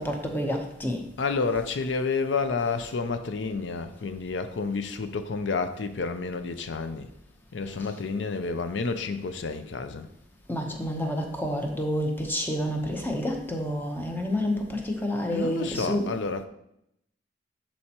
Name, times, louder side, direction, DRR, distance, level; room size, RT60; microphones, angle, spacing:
voice 1, 0.0-1.0 10.5-16.1, left 1 dB, 10° left, 0.8 m, -29 dB
voice 2, 1.2-7.1 7.5-10.1 15.3-16.4, left 4 dB, 75° left, 0.5 m, -30 dB
11.0 x 4.3 x 2.9 m
head